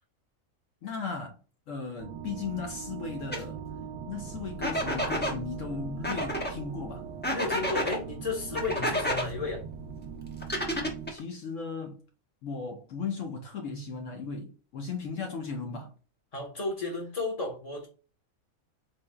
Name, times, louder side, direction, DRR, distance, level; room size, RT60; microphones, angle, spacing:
voice 1, 0.8-1.4 1.7-3.6 4.1-7.0 11.1-12.0 12.4-15.9, left 5 dB, 70° left, 1.0 m, -36 dB
sound 1, 2.0-11.1, right 7 dB, 65° right, 0.8 m, -41 dB
sound 2, 3.3-3.4 4.6-5.3 6.0-6.5 7.2-8.0 8.5-9.3 10.4-11.2, equal, 10° left, 0.5 m, -30 dB
voice 2, 7.3-9.6 16.3-17.9, left 3 dB, 30° left, 1.2 m, -33 dB
4.2 x 3.1 x 2.3 m
omnidirectional pair, 1.4 m